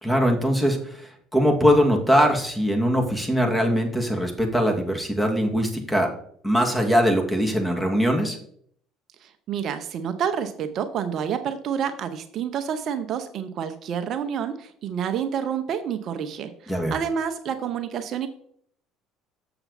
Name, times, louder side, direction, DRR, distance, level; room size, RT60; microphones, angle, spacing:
voice 1, 0.0-6.1 6.4-8.4 16.7-16.9, equal, 10° left, 2 dB, 2.1 m, -21 dB
voice 2, 9.2-18.3, right 8 dB, 55° right, 9 dB, 0.7 m, -29 dB
6.9 x 6.9 x 4.1 m, 0.63 s
hypercardioid pair, 70°, 0 cm